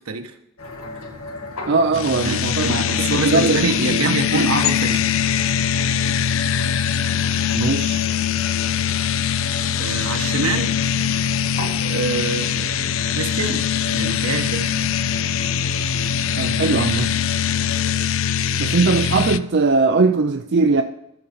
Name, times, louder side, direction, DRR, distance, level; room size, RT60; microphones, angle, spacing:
sound 1, 0.6-17.9, left 1 dB, 80° left, 2.0 m, -36 dB
voice 1, 1.7-4.5 7.5-8.1 16.4-17.1 18.6-20.8, right 4 dB, 50° right, 0.5 m, -20 dB
sound 2, 1.9-19.4, left 8 dB, 60° left, 0.5 m, -22 dB
voice 2, 2.2-5.2 9.8-10.7 11.8-12.8 13.1-13.7 13.9-14.6, right 3 dB, 75° right, 1.3 m, -25 dB
13.0 x 7.0 x 5.2 m
head